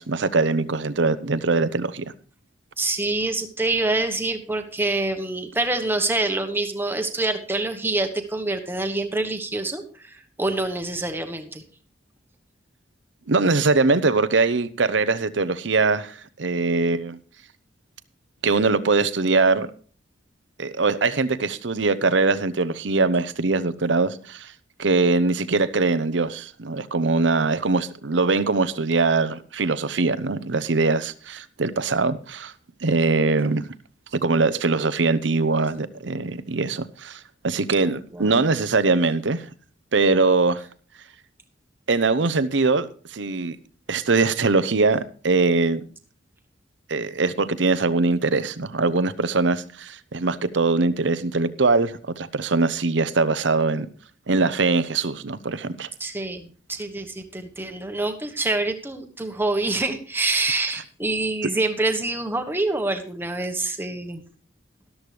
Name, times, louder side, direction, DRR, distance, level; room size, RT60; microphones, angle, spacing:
voice 1, 0.0-2.0 13.3-17.2 18.4-19.7 20.6-24.5 24.8-32.5 32.8-33.7 34.2-39.4 39.9-40.6 41.9-43.6 43.9-45.8 46.9-53.9 54.3-55.9, right 3 dB, 75° right, 0.8 m, -22 dB
voice 2, 2.8-11.6 37.8-38.5 56.0-64.2, right 2 dB, 10° right, 1.2 m, -26 dB
13.0 x 12.5 x 3.3 m
head